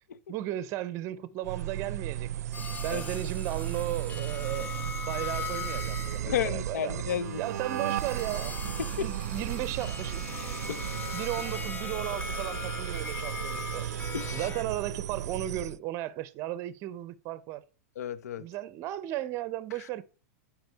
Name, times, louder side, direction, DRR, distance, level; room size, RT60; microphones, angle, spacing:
voice 1, 0.3-2.6 2.8-4.7 5.0-7.0 7.4-8.6 9.0-10.3 11.1-13.9 14.3-17.6 18.4-20.0, right 14 dB, 35° right, 0.6 m, -35 dB
sound 1, 1.4-15.8, right 11 dB, 85° right, 0.5 m, -35 dB
sound 2, 2.5-6.2 6.6-14.6, left 6 dB, 20° left, 0.8 m, -40 dB
voice 2, 6.2-7.4 8.8-9.1 10.7-11.2 14.1-14.5 18.0-18.4, left 9 dB, 85° left, 0.6 m, -33 dB
sound 3, 11.4-15.3, left 3 dB, 45° left, 1.4 m, -53 dB
8.0 x 5.0 x 4.6 m
hypercardioid pair, 135°, 8 cm